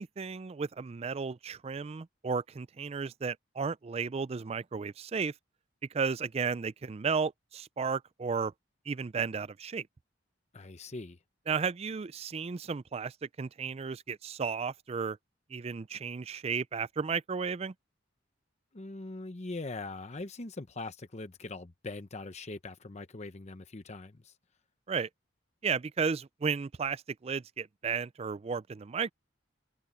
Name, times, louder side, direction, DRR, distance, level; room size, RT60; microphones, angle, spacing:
voice 1, 0.0-5.3 5.9-8.5 8.9-9.9 11.5-15.2 15.5-17.7 24.9-25.1 25.6-29.1, right 5 dB, 35° right, 0.4 m, -34 dB
voice 2, 10.5-11.2 18.7-24.4, left 2 dB, 35° left, 0.8 m, -41 dB
head